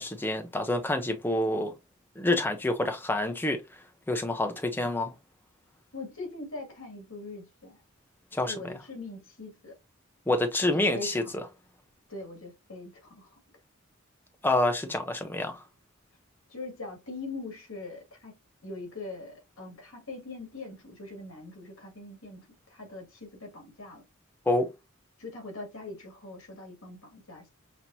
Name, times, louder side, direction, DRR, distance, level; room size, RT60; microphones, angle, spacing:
voice 1, 0.0-1.7 2.2-3.6 4.1-5.1 8.3-8.7 10.3-11.2 14.4-15.6 24.5-24.7, left 1 dB, 10° left, 0.5 m, -27 dB
voice 2, 5.9-7.8 8.4-9.7 10.6-11.3 12.1-13.3 16.5-18.3 18.6-24.0 25.2-27.5, left 2 dB, 80° left, 2.3 m, -42 dB
5.9 x 2.9 x 2.7 m
head